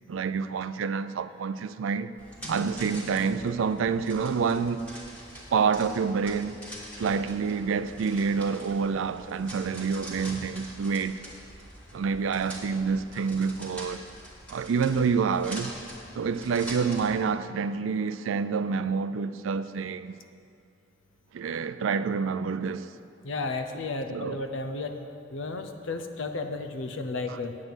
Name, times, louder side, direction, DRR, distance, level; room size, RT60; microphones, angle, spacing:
voice 1, 0.1-2.1 2.5-4.8 5.5-6.6 7.0-11.2 11.9-14.1 14.5-15.7 16.1-20.1 21.3-22.9 24.1-24.4, right 5 dB, 90° right, 0.4 m, -28 dB
sound 1, 2.2-17.2, equal, 5° left, 1.6 m, -44 dB
voice 2, 23.2-25.0 25.3-27.6, left 3 dB, 80° left, 0.7 m, -33 dB
8.7 x 8.5 x 6.2 m
head